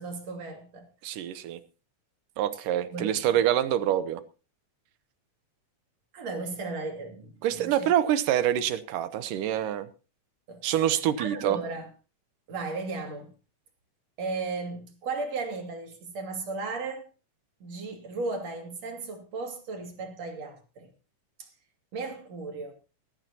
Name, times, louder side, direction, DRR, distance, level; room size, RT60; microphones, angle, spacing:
voice 1, 0.0-0.9 2.9-3.2 6.1-7.9 10.5-10.8 11.2-11.9 12.5-13.3 14.2-17.1 17.6-20.9 21.4-21.5 21.9-22.7, right 3 dB, 55° right, 3.5 m, -35 dB
voice 2, 1.0-1.6 2.4-4.2 7.4-9.9 10.6-11.6, right 11 dB, 80° right, 2.5 m, -26 dB
19.5 x 14.0 x 2.9 m
omnidirectional pair, 3.8 m